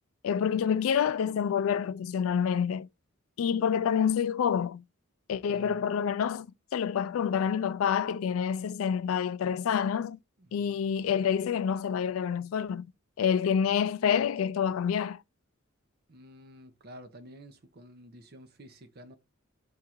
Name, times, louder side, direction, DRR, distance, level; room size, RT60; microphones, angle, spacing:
voice 1, 0.2-2.9 3.4-4.8 5.3-6.5 6.7-10.2 10.5-12.9 13.2-15.2, left 7 dB, 80° left, 0.3 m, -27 dB
voice 2, 5.4-5.9 10.4-10.9 16.1-19.2, equal, 50° right, 0.8 m, -50 dB
3.6 x 2.5 x 4.4 m
head